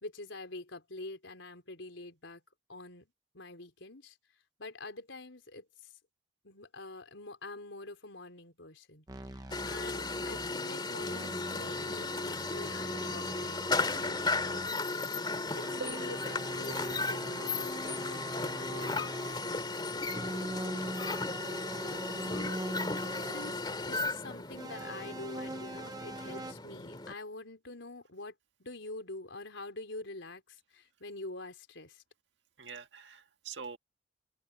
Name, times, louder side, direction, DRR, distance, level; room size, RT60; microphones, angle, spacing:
voice 1, 0.0-2.4 2.7-3.1 3.3-4.2 4.6-5.7 6.4-14.8 15.5-19.1 22.2-22.6 23.2-28.3 28.6-32.0, left 2 dB, 80° left, 4.1 m, -46 dB
sound 1, 9.1-10.6 11.0-14.8 15.5-19.5 20.1-23.7 24.5-26.5, right 1 dB, 20° right, 0.9 m, -43 dB
Compactor Crunching Boxes, 9.5-27.1, left 3 dB, 25° left, 2.3 m, -35 dB
voice 2, 16.3-16.7 19.3-19.7 32.6-33.8, right 5 dB, 70° right, 1.8 m, -45 dB
head